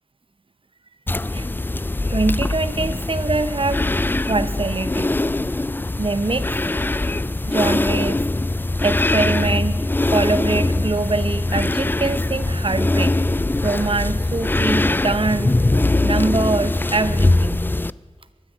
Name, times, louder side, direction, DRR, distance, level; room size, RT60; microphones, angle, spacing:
sound 1, 1.1-17.9, left 2 dB, 20° left, 0.3 m, -22 dB
voice 1, 2.1-3.9 4.3-5.2 6.0-6.9 7.5-8.2 8.8-13.2 13.6-15.6 16.0-17.6, right 3 dB, 55° right, 14 dB, 0.8 m, -24 dB
13.0 x 9.8 x 8.6 m, 1.4 s
wide cardioid pair, 60°, 11 cm